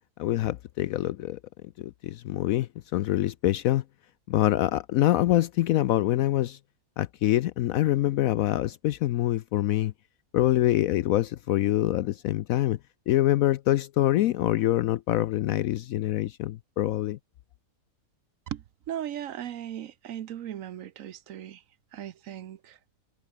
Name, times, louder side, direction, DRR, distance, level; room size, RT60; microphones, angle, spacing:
voice 1, 0.2-1.4 1.8-3.8 4.3-6.6 7.0-9.9 10.3-12.8 13.1-17.2, left 14 dB, 75° left, 1.0 m, -25 dB
voice 2, 18.5-21.6 21.9-22.8, right 10 dB, 65° right, 1.1 m, -37 dB
omnidirectional pair, 1.6 m